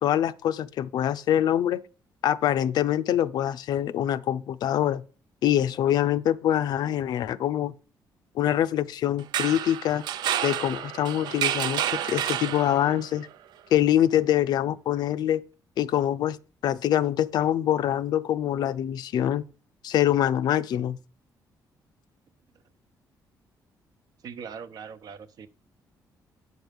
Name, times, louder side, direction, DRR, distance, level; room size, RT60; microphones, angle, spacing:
voice 1, 0.0-1.8 2.2-5.0 5.4-7.7 8.4-10.0 10.4-13.3 13.7-15.4 15.8-16.4 16.6-19.4 19.8-21.0, left 11 dB, 70° left, 0.5 m, -24 dB
sound 1, 9.2-13.1, right 10 dB, 80° right, 0.5 m, -29 dB
voice 2, 24.2-25.5, right 6 dB, 60° right, 0.9 m, -40 dB
9.5 x 6.2 x 5.3 m
cardioid pair, 140°, 7 cm